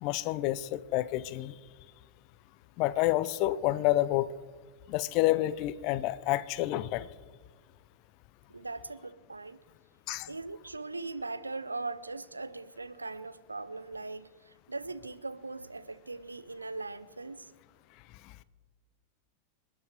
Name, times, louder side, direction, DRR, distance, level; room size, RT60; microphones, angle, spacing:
voice 1, 0.0-1.5 2.8-4.3 4.9-7.1 10.1-10.3, left 16 dB, 45° left, 18 dB, 0.6 m, -28 dB
voice 2, 8.5-9.6 10.3-17.5, right 3 dB, 80° right, 14 dB, 0.7 m, -40 dB
27.5 x 9.7 x 4.8 m, 1.5 s
figure-of-eight pair, 90°, 0 cm